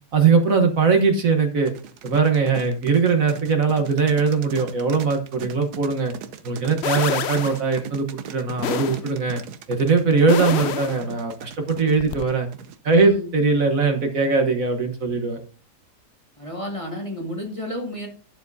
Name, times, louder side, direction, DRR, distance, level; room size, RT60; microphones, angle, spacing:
voice 1, 0.1-1.7 2.0-6.1 6.4-9.4 9.7-12.5 12.8-15.4, right 4 dB, 60° right, 3 dB, 1.5 m, -20 dB
sound 1, 1.7-13.1, right 8 dB, 80° right, 1.3 m, -39 dB
sound 2, 6.8-7.6 8.6-9.0 10.3-11.0 12.0-12.2, left 9 dB, 65° left, 0.6 m, -27 dB
voice 2, 12.9-13.3 16.4-18.1, left 1 dB, 20° left, 1 dB, 1.8 m, -31 dB
12.0 x 7.0 x 2.7 m, 0.39 s
omnidirectional pair, 1.7 m